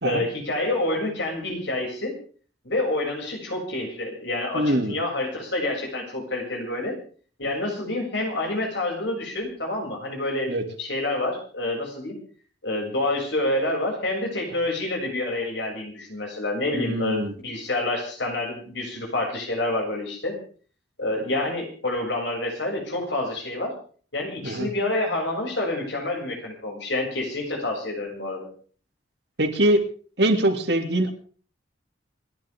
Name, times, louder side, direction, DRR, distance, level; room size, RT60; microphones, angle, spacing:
voice 1, 0.0-2.1 2.6-7.0 7.4-12.2 12.6-20.4 21.0-23.7 24.1-28.5, left 2 dB, 65° left, 1 dB, 7.2 m, -28 dB
voice 2, 4.5-4.9 10.5-10.6 16.7-17.3 24.4-24.7 29.4-29.8 30.2-31.1, right 1 dB, 60° right, 5 dB, 2.6 m, -22 dB
28.5 x 11.5 x 3.7 m, 0.43 s
head